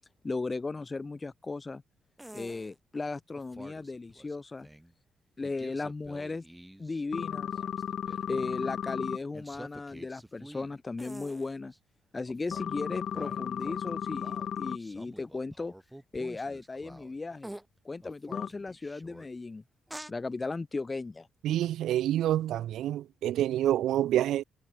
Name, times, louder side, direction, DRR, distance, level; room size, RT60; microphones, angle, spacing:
voice 1, 0.2-1.8 2.3-4.7 5.4-6.5 6.8-7.5 8.3-11.7 12.1-15.7 16.1-17.5 17.8-19.6 20.1-21.3, left 3 dB, 25° left, 3.5 m, -36 dB
sound 1, 2.2-2.7 3.3-4.9 5.4-7.0 7.3-8.8 9.3-11.8 12.3-17.1 17.4-17.7 18.0-19.3 19.9-20.1, right 1 dB, 5° right, 6.0 m, -48 dB
sound 2, 7.1-9.2 12.5-14.8 18.3-18.5, left 9 dB, 60° left, 0.5 m, -34 dB
voice 2, 21.4-24.4, right 12 dB, 80° right, 0.4 m, -27 dB
cardioid pair, 90°, 0 cm